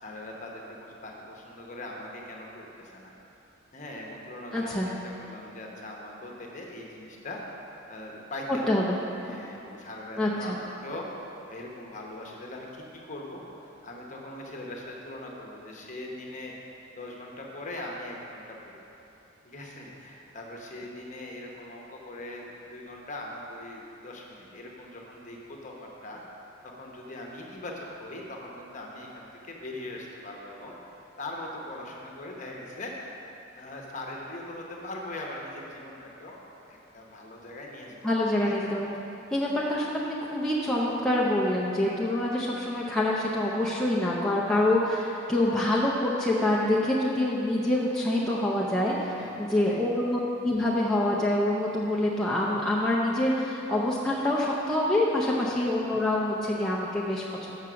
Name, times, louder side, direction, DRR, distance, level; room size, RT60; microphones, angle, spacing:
voice 1, 0.0-3.1 3.7-7.4 7.9-8.7 9.2-16.6 16.9-18.6 19.4-26.2 26.6-32.9 33.5-38.7 39.4-39.5 49.2-50.1 55.5-55.6, left 1 dB, 35° left, -1 dB, 1.0 m, -41 dB
voice 2, 4.5-4.9 8.7-9.0 10.2-10.5 38.0-38.9 39.3-57.6, left 1 dB, 5° left, -6 dB, 0.6 m, -26 dB
7.3 x 5.8 x 6.2 m, 2.9 s
head